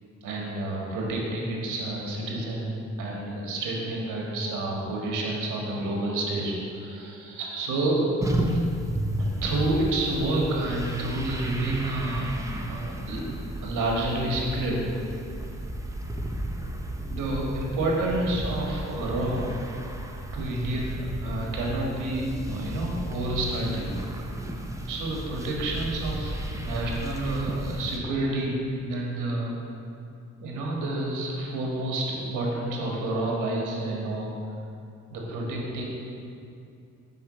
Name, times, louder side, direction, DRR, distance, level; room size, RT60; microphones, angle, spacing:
voice 1, 0.2-2.7 3.0-8.2 8.4-8.6 9.2-12.3 12.7-13.2 13.6-14.8 16.5-16.7 17.1-19.5 20.3-23.9 24.9-28.5 28.8-29.5 30.4-34.3 35.1-35.8, right 2 dB, 85° right, -2 dB, 1.5 m, -29 dB
sound 1, 8.2-28.0, right 1 dB, 10° right, 0.6 m, -33 dB
5.8 x 5.0 x 5.7 m, 2.5 s
cardioid pair, 90°, 30 cm